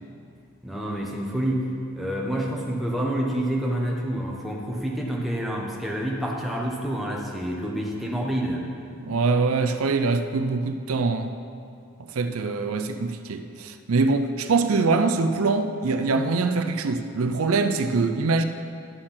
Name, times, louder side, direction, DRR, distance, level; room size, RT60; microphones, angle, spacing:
voice 1, 0.6-1.7 2.0-8.7, right 1 dB, ahead, -3 dB, 1.0 m, -28 dB
voice 2, 9.0-11.3 12.1-18.4, right 3 dB, 80° right, 8 dB, 0.5 m, -23 dB
11.5 x 6.5 x 5.7 m, 2.4 s
head